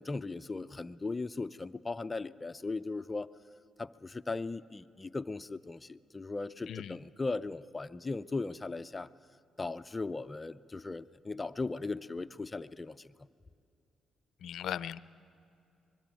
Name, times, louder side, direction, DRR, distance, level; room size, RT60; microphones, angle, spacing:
voice 1, 0.0-3.3 3.8-9.1 9.6-13.1, left 3 dB, 20° left, 12 dB, 0.5 m, -38 dB
voice 2, 14.4-15.0, left 10 dB, 70° left, 18 dB, 0.5 m, -38 dB
24.0 x 21.5 x 9.1 m, 2.5 s
cardioid pair, 90°, 0 cm